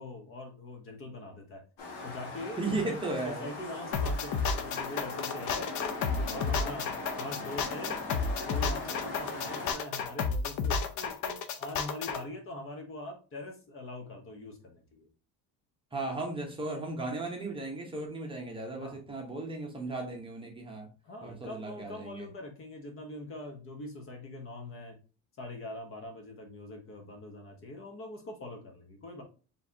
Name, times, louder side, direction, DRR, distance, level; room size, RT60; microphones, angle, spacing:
voice 1, 0.0-1.6 2.0-3.0 3.2-5.7 6.1-8.0 8.4-15.1 18.8-19.0 21.0-25.0 25.4-29.2, left 1 dB, 35° left, 3 dB, 1.0 m, -43 dB
sound 1, 1.8-9.7, left 2 dB, 80° left, 1.9 m, -40 dB
voice 2, 2.6-3.5 15.9-20.9 21.2-22.2, right 2 dB, 15° right, 0 dB, 1.0 m, -36 dB
sound 2, 3.9-12.2, left 5 dB, 55° left, 0.6 m, -31 dB
4.7 x 3.4 x 2.7 m, 0.35 s
cardioid pair, 155°, 35 cm